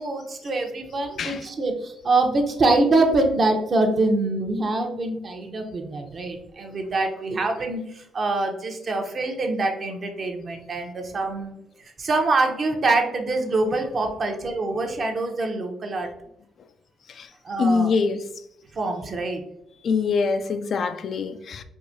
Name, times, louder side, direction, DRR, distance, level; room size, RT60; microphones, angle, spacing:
voice 1, 0.0-11.5 11.8-16.1 17.4-17.9 18.7-19.4, right 2 dB, 45° right, 0.7 m, -24 dB
voice 2, 17.6-18.2 19.8-21.6, left 4 dB, 55° left, 0.3 m, -24 dB
4.7 x 2.7 x 2.6 m
cardioid pair, 90°, 0 cm